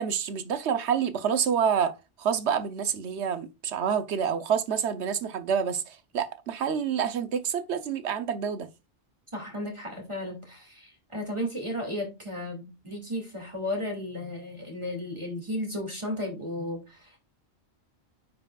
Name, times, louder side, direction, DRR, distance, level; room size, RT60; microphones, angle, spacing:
voice 1, 0.0-8.7, right 7 dB, 80° right, 1.1 m, -28 dB
voice 2, 9.3-17.2, left 1 dB, 25° right, 2.4 m, -34 dB
9.3 x 5.6 x 2.4 m
omnidirectional pair, 1.1 m